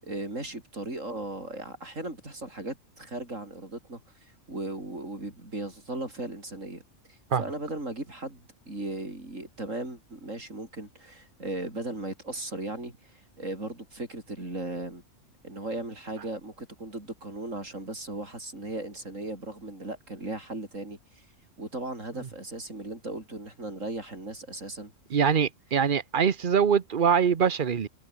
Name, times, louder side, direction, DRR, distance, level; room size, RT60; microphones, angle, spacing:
voice 1, 0.0-6.8 7.1-15.0 15.4-21.3 21.6-24.9, right 2 dB, 85° right, 7.6 m, -37 dB
voice 2, 25.1-27.9, right 7 dB, 45° right, 1.0 m, -23 dB
omnidirectional pair, 1.3 m